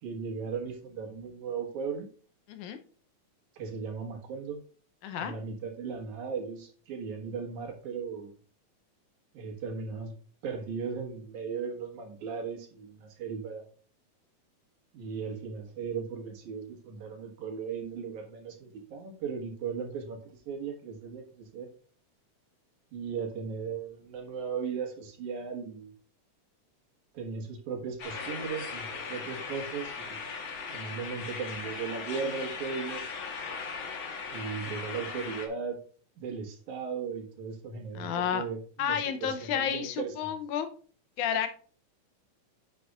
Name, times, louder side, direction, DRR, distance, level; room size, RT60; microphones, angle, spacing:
voice 1, 0.0-2.1 3.6-4.6 5.2-8.3 9.3-10.1 10.4-13.7 14.9-20.2 20.5-21.7 22.9-25.9 27.1-30.2 30.7-33.0 34.3-35.8 36.2-40.3, right 5 dB, 70° right, 2 dB, 2.9 m, -37 dB
voice 2, 5.0-5.3 37.9-38.4 38.8-40.7 41.2-41.5, left 9 dB, 80° left, 8 dB, 2.1 m, -31 dB
sound 1, 28.0-35.5, left 5 dB, 55° left, 1.6 m, -38 dB
10.5 x 6.9 x 2.4 m, 0.42 s
omnidirectional pair, 3.5 m